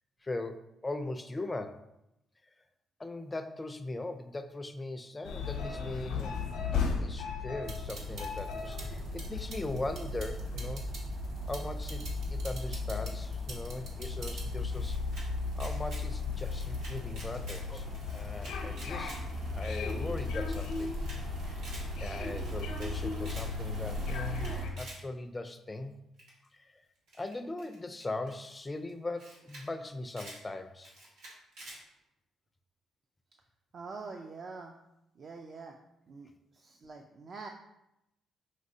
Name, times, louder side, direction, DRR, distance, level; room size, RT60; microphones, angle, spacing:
voice 1, 0.2-1.8 3.0-6.3 6.7-10.8 11.5-15.0 15.6-19.1 19.5-20.9 21.4-21.7 22.0-24.5 24.8-26.0 26.5-26.8 27.2-30.9, left 2 dB, 20° left, 8 dB, 0.4 m, -39 dB
sound 1, 5.2-24.7, left 5 dB, 90° left, 0.7 m, -38 dB
sound 2, 7.6-24.7, left 1 dB, 70° right, 1.0 m, -39 dB
Camera, 14.4-15.2 15.5-16.0 16.3-17.6 17.9-19.2 19.5-19.6 19.9-20.0 20.2-20.3 20.6-21.2 21.5-21.8 22.2-22.9 23.2-23.5 23.9-25.0 26.2-26.5 27.1-28.3 28.9-29.0 29.2-29.6 29.9-30.4 30.8-31.8, right 1 dB, 90° right, 1.3 m, -49 dB
voice 2, 33.7-34.7 35.2-35.8 36.1-37.5, right 4 dB, 50° right, 3 dB, 0.4 m, -45 dB
5.2 x 3.0 x 2.7 m, 0.85 s
cardioid pair, 90°, 0 cm